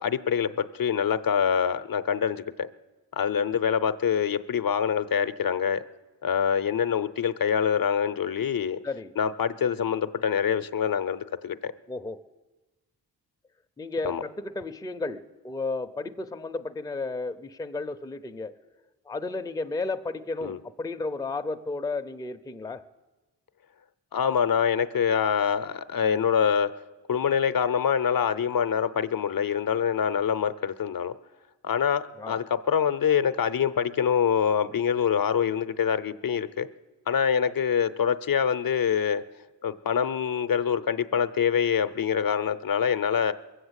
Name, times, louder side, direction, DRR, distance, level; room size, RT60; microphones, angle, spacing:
voice 1, 0.0-2.7 3.1-5.8 6.2-8.8 9.2-11.7 14.1-14.2 20.4-20.6 24.1-26.7 27.1-31.1 31.6-36.7 37.1-39.2 39.6-43.3, left 7 dB, 55° left, 12 dB, 0.6 m, -25 dB
voice 2, 11.9-12.2 13.8-18.5 19.1-22.8 32.2-32.4, left 3 dB, 10° left, 6 dB, 0.5 m, -33 dB
21.5 x 7.9 x 8.1 m, 1.2 s
wide cardioid pair, 100°, 42 cm